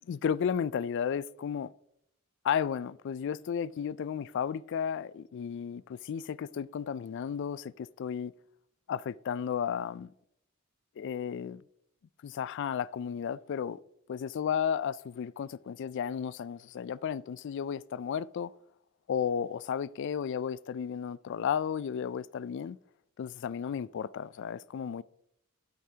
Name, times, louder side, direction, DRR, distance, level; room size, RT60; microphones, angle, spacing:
voice 1, 0.1-1.7 2.4-8.3 8.9-10.1 11.0-11.6 12.2-13.8 14.1-18.5 19.1-22.8 23.2-25.0, left 7 dB, 55° left, 0.3 m, -33 dB
12.5 x 8.3 x 2.8 m
head